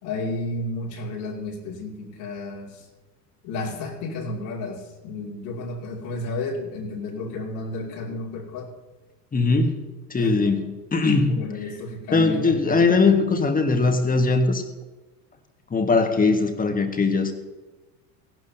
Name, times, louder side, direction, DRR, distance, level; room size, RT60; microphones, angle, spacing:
voice 1, 0.0-2.9 3.4-8.7 10.2-10.6 11.2-13.1, left 2 dB, 60° left, -2 dB, 2.7 m, -32 dB
voice 2, 9.3-9.7 10.1-10.6 10.9-11.4 12.1-14.6 15.7-17.3, left 3 dB, 15° left, 5 dB, 1.7 m, -20 dB
17.5 x 12.0 x 2.8 m, 1.2 s
hypercardioid pair, 80°, 49 cm